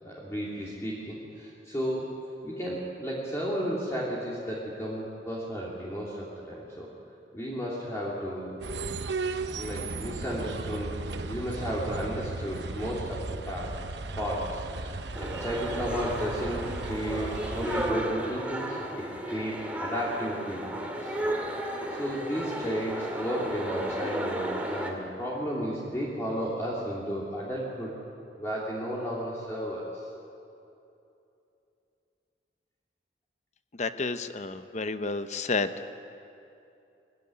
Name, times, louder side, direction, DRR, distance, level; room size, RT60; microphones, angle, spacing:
voice 1, 0.0-6.9 7.3-8.6 9.5-13.7 14.2-21.1 21.5-27.9 28.3-30.0, equal, 15° left, -6 dB, 3.0 m, -33 dB
sound 1, 8.6-17.9, right 3 dB, 75° right, 0.9 m, -36 dB
sound 2, 15.1-24.9, right 1 dB, 10° right, 2.4 m, -34 dB
voice 2, 33.8-36.0, left 3 dB, 40° left, 10 dB, 0.9 m, -31 dB
22.0 x 15.5 x 9.8 m, 2.7 s
head